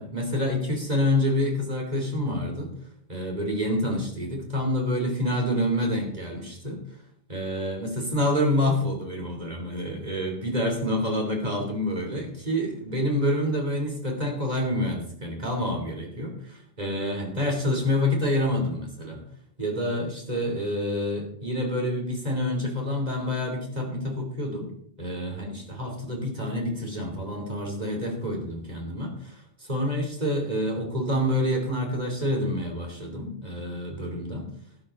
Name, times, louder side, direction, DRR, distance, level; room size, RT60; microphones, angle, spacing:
voice 1, 0.0-2.7 3.1-6.8 7.3-19.2 19.6-24.7 25.0-34.5, left 1 dB, 40° right, 1 dB, 3.3 m, -27 dB
12.5 x 11.5 x 3.8 m, 0.67 s
omnidirectional pair, 1.1 m